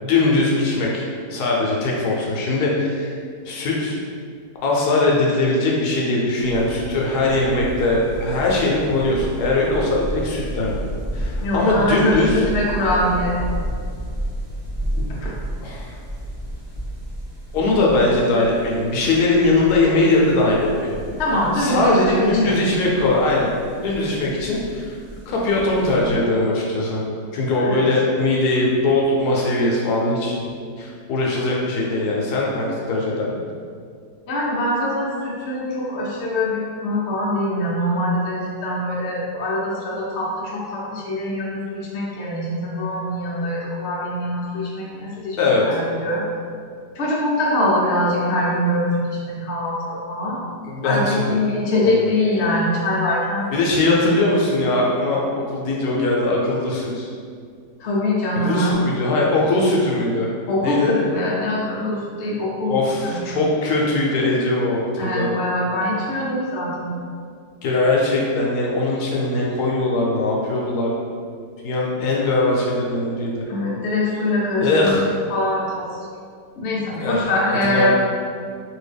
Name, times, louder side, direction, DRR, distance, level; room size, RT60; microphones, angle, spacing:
voice 1, 0.0-1.0 1.3-3.2 3.4-4.0 4.6-10.7 11.1-12.4 15.6-16.0 17.5-21.1 21.6-23.5 23.8-25.0 25.3-27.0 27.3-30.5 30.8-33.4 45.4-45.6 50.6-51.4 51.8-52.0 53.5-57.1 58.4-60.3 60.6-61.0 62.7-65.3 67.6-70.9 71.6-73.5 74.6-75.0 76.9-77.3 77.6-78.0, left 2 dB, 75° left, -3 dB, 1.1 m, -20 dB
sound 1, 6.4-26.1, equal, 30° right, 0.6 m, -32 dB
voice 2, 11.4-13.4 15.1-15.3 21.2-22.6 27.6-27.8 34.3-46.2 46.9-50.4 50.8-53.5 53.8-54.0 57.8-58.8 60.5-62.7 63.0-63.2 65.0-67.0 73.5-75.0 75.3-75.9 76.6-78.0, left 1 dB, 60° left, -5 dB, 0.7 m, -23 dB
2.8 x 2.7 x 3.3 m, 2.2 s
omnidirectional pair, 1.8 m